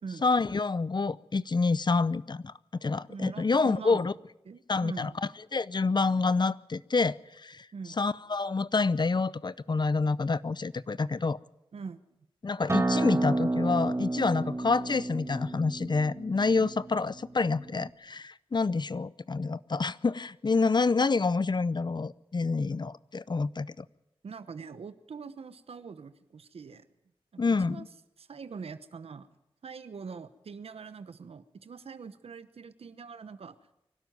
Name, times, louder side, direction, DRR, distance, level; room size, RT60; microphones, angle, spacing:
voice 1, 0.2-2.5 2.8-4.1 4.7-5.1 5.5-7.7 8.0-11.4 12.4-23.8 27.4-27.9, left 4 dB, 50° left, 19 dB, 0.6 m, -28 dB
voice 2, 3.1-4.1 4.4-5.2 7.7-8.0 11.7-12.0 16.6-16.7 24.2-26.9 27.3-27.9 28.2-29.3 29.6-33.6, right 5 dB, 85° right, 13 dB, 1.0 m, -43 dB
Acoustic guitar, 12.7-17.9, right 2 dB, 30° right, 1.7 m, -31 dB
24.0 x 12.0 x 9.3 m, 0.88 s
cardioid pair, 40°, 10 cm